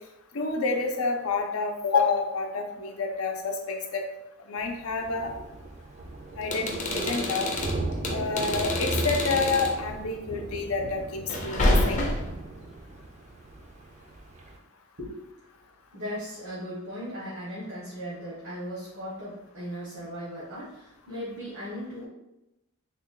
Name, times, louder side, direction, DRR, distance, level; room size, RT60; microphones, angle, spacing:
voice 1, 0.3-4.0 4.5-5.3 6.4-7.5 8.1-12.1, left 4 dB, 85° left, 3 dB, 0.6 m, -28 dB
Thunder, 4.6-14.6, right 2 dB, 35° right, 0.4 m, -36 dB
sound 1, 6.4-9.8 11.3-12.4, left 1 dB, 35° left, 0.6 m, -28 dB
voice 2, 15.9-22.1, equal, 85° right, -7 dB, 1.1 m, -37 dB
3.5 x 2.2 x 3.6 m, 0.93 s
head